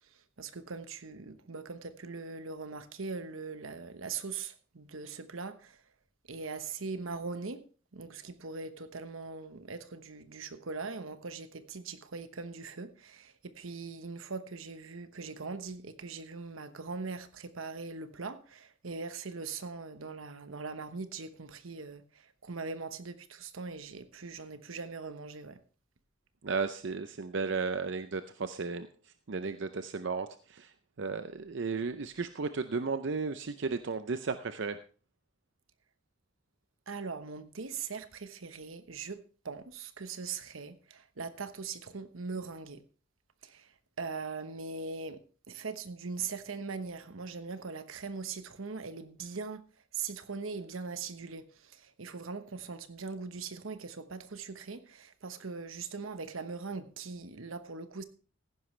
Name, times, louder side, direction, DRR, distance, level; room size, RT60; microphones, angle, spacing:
voice 1, 0.4-5.8 6.3-7.6 7.9-25.6 36.9-42.8 43.4-43.7 44.0-45.2 45.5-49.6 49.9-58.0, right 4 dB, 80° right, 1.1 m, -41 dB
voice 2, 26.4-28.9 29.3-34.8, right 4 dB, 60° right, 0.6 m, -34 dB
15.0 x 11.0 x 3.2 m
head